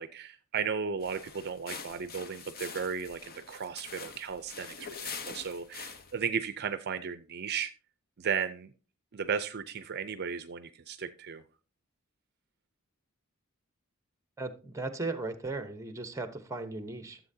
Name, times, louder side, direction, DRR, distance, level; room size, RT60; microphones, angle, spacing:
voice 1, 0.0-7.7 8.2-8.7 9.1-11.4, right 6 dB, 50° right, 12 dB, 0.5 m, -35 dB
sound 1, 1.0-6.2, left 5 dB, 45° left, 0.9 m, -44 dB
voice 2, 14.4-17.2, right 3 dB, 15° right, 11 dB, 0.9 m, -37 dB
13.5 x 7.5 x 2.7 m, 0.34 s
head